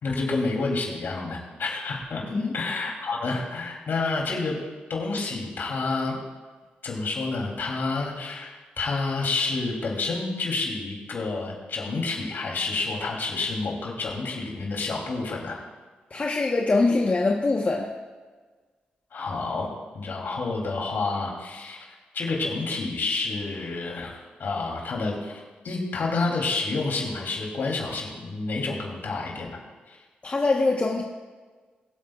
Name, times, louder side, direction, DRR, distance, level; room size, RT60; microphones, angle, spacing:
voice 1, 0.0-2.2 2.5-4.6 4.9-6.1 6.8-15.6 19.1-19.7 19.9-21.9 22.1-29.6 29.9-30.0, left 3 dB, 70° left, -1 dB, 3.2 m, -29 dB
voice 2, 16.1-17.9 30.2-31.0, left 3 dB, 40° left, -1 dB, 1.2 m, -23 dB
22.5 x 8.3 x 2.5 m, 1.4 s
cardioid pair, 55°, 4 cm